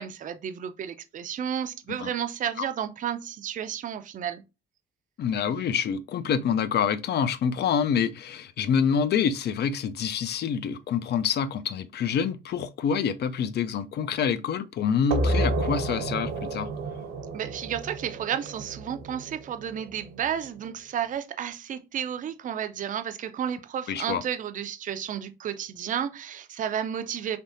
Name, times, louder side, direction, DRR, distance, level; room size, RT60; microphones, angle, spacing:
voice 1, 0.0-4.4 17.3-27.4, right 9 dB, 40° right, 0.4 m, -32 dB
voice 2, 5.2-16.7 23.9-24.2, left 7 dB, 55° left, 0.4 m, -26 dB
sound 1, 15.1-20.4, right 1 dB, 85° right, 0.7 m, -31 dB
3.4 x 2.7 x 2.6 m
cardioid pair, 90°, 20 cm